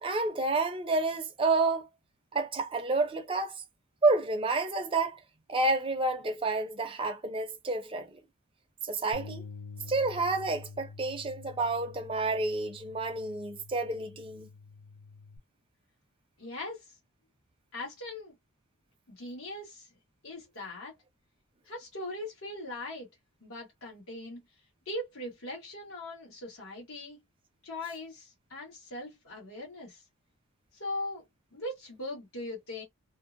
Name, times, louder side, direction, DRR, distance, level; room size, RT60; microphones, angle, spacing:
voice 1, 0.0-1.9 2.3-3.6 4.0-5.2 5.5-8.2 8.8-9.4 9.9-14.5, right 3 dB, 25° right, 0.5 m, -29 dB
Bass guitar, 9.1-15.4, left 4 dB, 30° left, 0.7 m, -47 dB
voice 2, 16.4-17.0 17.7-18.3 19.1-19.9 20.2-21.0 21.7-23.1 23.4-24.4 24.8-27.2 27.6-30.0 30.7-31.2 31.5-32.8, left 1 dB, 70° left, 1.2 m, -40 dB
2.6 x 2.0 x 2.5 m
head